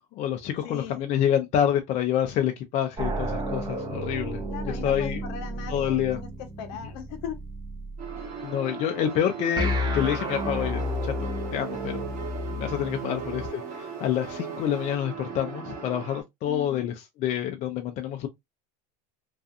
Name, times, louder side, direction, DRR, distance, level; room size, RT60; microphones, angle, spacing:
voice 1, 0.1-5.2 5.7-6.2 8.4-11.1 11.5-12.0 12.6-18.3, left 10 dB, 35° left, 0.4 m, -27 dB
voice 2, 0.6-1.0 4.5-7.4 13.1-13.2 16.5-17.0, left 8 dB, 60° left, 0.8 m, -39 dB
sound 1, 3.0-8.3 9.6-13.5, equal, 20° right, 0.6 m, -32 dB
sound 2, 8.0-16.2, right 6 dB, 35° right, 1.0 m, -39 dB
sound 3, 10.0-15.0, right 12 dB, 65° right, 0.6 m, -41 dB
2.4 x 2.4 x 2.4 m
supercardioid pair, 135°, 21 cm